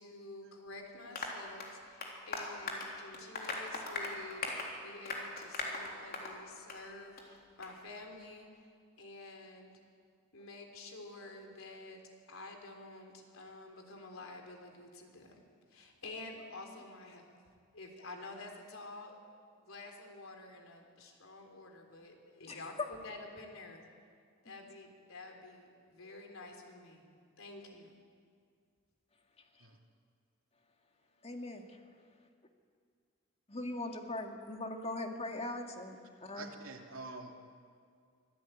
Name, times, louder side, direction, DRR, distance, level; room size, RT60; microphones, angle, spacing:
voice 1, 0.0-4.5 4.8-8.5 9.0-9.7 10.3-12.0 12.3-15.4 15.7-17.3 17.7-19.2 19.6-23.8 24.4-27.0 27.4-27.9, left 2 dB, 85° left, 3 dB, 3.6 m, -49 dB
Applause, 1.2-6.4 6.7-6.8 7.2-7.3 7.6-7.7, left 2 dB, 50° left, 3.5 m, -40 dB
voice 2, 31.2-31.8 33.5-36.5, left 2 dB, 30° left, 4 dB, 2.0 m, -41 dB
voice 3, 36.3-37.3, right 3 dB, 85° right, 2 dB, 2.9 m, -46 dB
24.5 x 16.5 x 9.1 m, 2.1 s
head